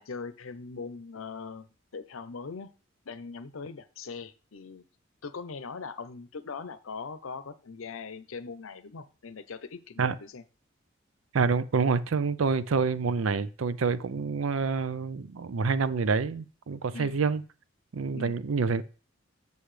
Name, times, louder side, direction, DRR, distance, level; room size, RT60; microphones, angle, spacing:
voice 1, 0.0-2.7 3.1-4.8 5.2-10.4 16.9-17.2 18.1-18.4, left 5 dB, 90° left, 0.7 m, -41 dB
voice 2, 11.3-17.4 17.9-18.8, right 5 dB, 75° right, 0.5 m, -27 dB
8.0 x 7.0 x 3.3 m
head